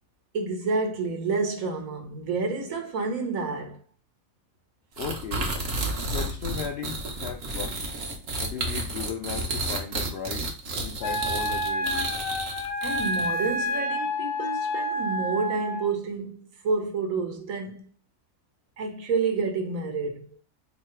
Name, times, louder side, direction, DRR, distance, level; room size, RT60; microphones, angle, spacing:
voice 1, 0.3-3.8 12.8-17.9 18.8-20.4, right 4 dB, 70° right, 1.2 m, -29 dB
voice 2, 5.0-5.5 6.1-7.8 8.4-10.5 10.8-12.1, left 6 dB, 70° left, 0.6 m, -36 dB
sound 1, 5.0-13.5, right 2 dB, 50° right, 0.9 m, -31 dB
Wind instrument woodwind instrument, 11.0-15.9, equal, 85° left, 1.1 m, -29 dB
3.0 x 2.8 x 4.3 m
omnidirectional pair, 1.5 m